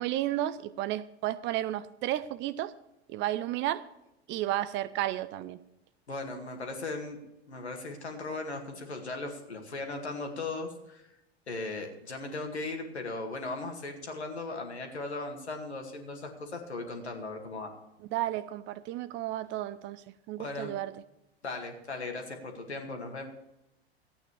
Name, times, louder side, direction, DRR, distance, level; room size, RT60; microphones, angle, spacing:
voice 1, 0.0-2.7 3.1-3.8 4.3-5.6 18.1-20.9, right 14 dB, 35° right, 16 dB, 0.6 m, -32 dB
voice 2, 6.1-7.2 7.5-11.0 11.5-17.7 20.4-20.7 21.4-23.3, left 3 dB, 80° left, 3 dB, 2.1 m, -37 dB
13.5 x 9.0 x 4.8 m, 0.90 s
figure-of-eight pair, 85°, 32 cm